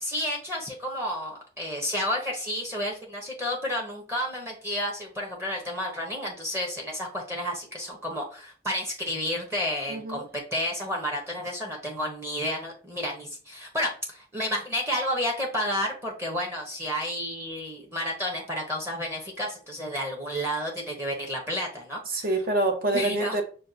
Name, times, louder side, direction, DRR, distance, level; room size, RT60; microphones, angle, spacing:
voice 1, 0.0-22.2 22.9-23.4, equal, 15° right, 0.8 m, -31 dB
voice 2, 9.9-10.2 22.1-23.4, right 2 dB, 55° right, 0.8 m, -26 dB
6.2 x 2.2 x 2.6 m
head